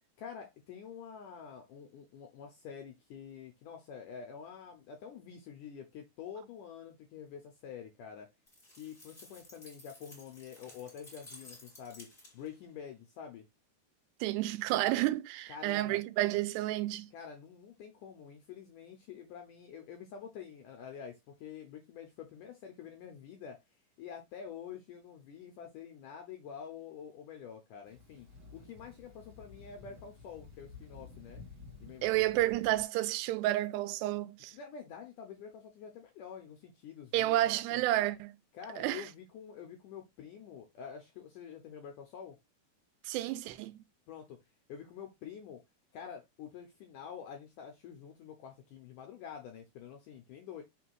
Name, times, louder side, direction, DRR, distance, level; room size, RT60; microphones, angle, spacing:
voice 1, 0.2-8.3 8.7-13.5 15.5-16.0 17.1-23.6 24.0-31.4 31.8-32.4 34.5-37.8 38.5-42.4 44.1-44.4 44.7-45.6 45.9-50.6, left 7 dB, 80° left, 1.9 m, -47 dB
sound 1, 8.5-12.6, left 2 dB, 15° left, 1.7 m, -55 dB
voice 2, 14.2-17.1 32.0-34.6 37.1-38.4 38.8-39.1 43.0-43.8, right 16 dB, 90° right, 2.8 m, -30 dB
Thunder, 27.8-32.8, left 4 dB, 30° right, 1.3 m, -53 dB
6.0 x 3.3 x 4.7 m
omnidirectional pair, 4.7 m